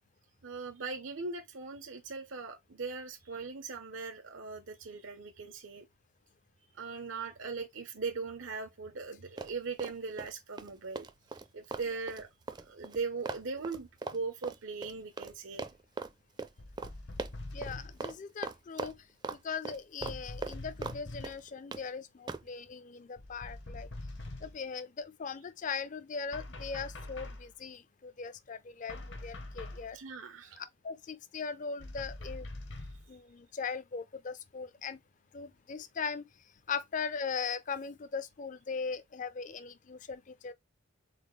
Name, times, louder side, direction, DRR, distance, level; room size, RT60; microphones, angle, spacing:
voice 1, 0.4-5.9 6.7-11.1 11.5-12.3 12.6-15.7 29.9-30.6, right 4 dB, 90° right, 0.8 m, -39 dB
Run, 9.4-10.3 10.6-15.3 15.6-16.1 16.4-16.5 16.8-16.9 17.2-17.7 18.0-18.2 18.4-19.4 19.7-21.0 21.2-21.8 22.3-22.5, right 3 dB, 20° right, 0.4 m, -40 dB
sound 1, 16.6-18.1 20.0-21.5 23.2-24.7 26.3-27.5 28.9-29.9 31.8-33.1, left 2 dB, 65° left, 1.0 m, -44 dB
voice 2, 17.5-19.0 19.3-23.9 24.4-29.0 29.2-30.0 30.6-32.5 33.1-35.0 35.3-36.2 36.7-40.5, left 5 dB, 40° left, 0.4 m, -39 dB
4.2 x 3.8 x 3.2 m
head